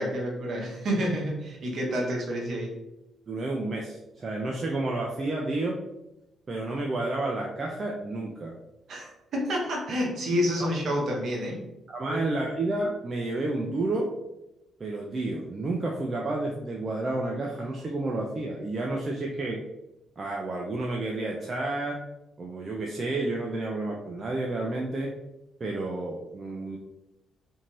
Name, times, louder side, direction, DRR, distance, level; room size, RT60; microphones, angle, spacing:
voice 1, 0.0-2.8 8.9-11.6 12.1-12.2, equal, 55° right, -1 dB, 0.8 m, -29 dB
voice 2, 3.3-5.8 6.5-8.6 11.9-14.1 14.8-19.6 20.2-22.0 22.4-25.1 25.6-26.8, right 2 dB, 35° right, -1 dB, 0.4 m, -30 dB
2.7 x 2.5 x 3.0 m, 0.91 s
figure-of-eight pair, 40°, 0 cm